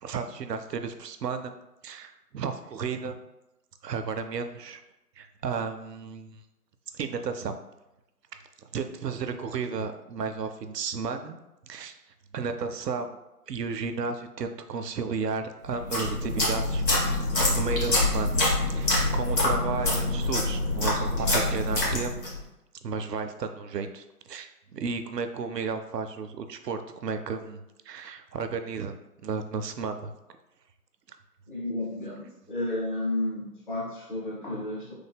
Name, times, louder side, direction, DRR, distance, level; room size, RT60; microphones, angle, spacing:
voice 1, 0.0-1.5 1.8-3.2 3.8-4.8 5.2-6.4 6.9-7.5 8.6-11.4 11.7-12.0 12.3-13.2 13.5-17.1 17.5-18.4 18.7-22.2 22.8-28.9 29.2-30.1, right 5 dB, 80° right, 8 dB, 0.6 m, -33 dB
sound 1, 15.7-22.4, left 2 dB, 85° left, 1.5 m, -26 dB
voice 2, 31.5-34.9, left 2 dB, 30° left, -6 dB, 0.7 m, -32 dB
3.3 x 2.1 x 3.4 m, 0.93 s
figure-of-eight pair, 165°, 48 cm